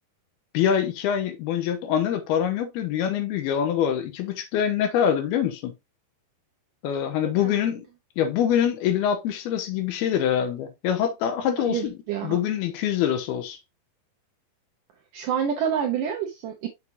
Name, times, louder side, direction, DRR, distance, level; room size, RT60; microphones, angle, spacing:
voice 1, 0.5-5.7 6.8-7.9 8.2-12.0 12.2-13.6, left 9 dB, 75° left, 2.6 m, -24 dB
voice 2, 11.6-12.4 15.1-16.7, right 8 dB, 75° right, 2.0 m, -27 dB
6.8 x 6.5 x 2.7 m
omnidirectional pair, 4.9 m